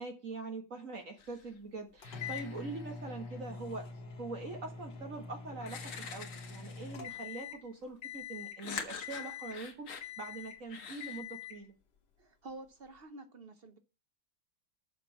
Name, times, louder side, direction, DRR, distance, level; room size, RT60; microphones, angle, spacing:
voice 1, 0.0-3.8 4.2-11.7, right 3 dB, 45° right, 1.7 m, -43 dB
sound 1, 1.2-1.6 2.0-3.4 4.9-5.0 5.6-7.2 8.6-10.1 10.7-11.2, left 6 dB, 85° left, 2.3 m, -45 dB
sound 2, 2.0-7.7 8.0-8.6 9.0-9.7 10.0-10.6 11.0-11.6, left 6 dB, 60° left, 1.8 m, -44 dB
voice 2, 12.2-13.8, right 2 dB, 60° right, 0.6 m, -49 dB
6.7 x 6.4 x 7.1 m
omnidirectional pair, 2.2 m